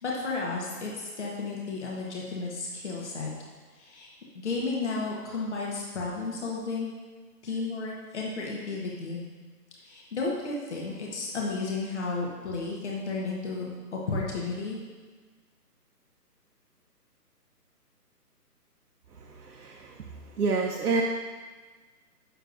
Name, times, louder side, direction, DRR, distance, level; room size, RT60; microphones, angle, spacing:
voice 1, 0.0-3.3 3.7-4.1 4.3-6.9 7.4-9.2 9.8-14.8, left 3 dB, 45° left, -3 dB, 1.3 m, -33 dB
voice 2, 19.3-19.9 20.4-21.0, right 4 dB, 75° right, 0 dB, 0.9 m, -28 dB
7.6 x 6.8 x 2.6 m, 1.4 s
hypercardioid pair, 175°, 48 cm